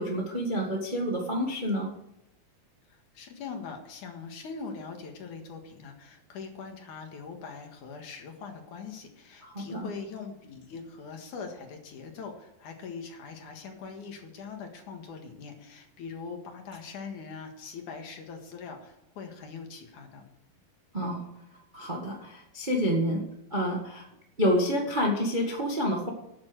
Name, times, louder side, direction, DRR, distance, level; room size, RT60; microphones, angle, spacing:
voice 1, 0.0-1.9 9.4-9.9 20.9-21.3 21.7-24.0 24.4-26.1, equal, 25° right, 0 dB, 1.0 m, -28 dB
voice 2, 2.9-20.2, left 5 dB, 65° left, 4 dB, 2.9 m, -42 dB
12.5 x 8.8 x 6.2 m, 0.85 s
omnidirectional pair, 4.1 m